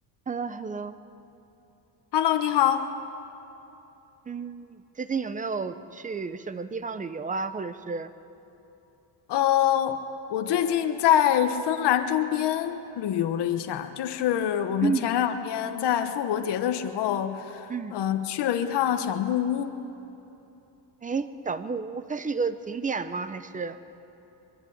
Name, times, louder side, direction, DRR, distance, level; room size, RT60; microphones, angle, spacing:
voice 1, 0.3-1.0 4.3-8.1 14.8-15.1 17.7-17.9 21.0-23.8, right 5 dB, 20° right, 12 dB, 0.7 m, -31 dB
voice 2, 2.1-2.8 9.3-10.0 10.3-17.4 17.9-19.7, left 10 dB, 65° left, 6 dB, 1.3 m, -25 dB
22.5 x 22.5 x 8.7 m, 3.0 s
cardioid pair, 155°, 44 cm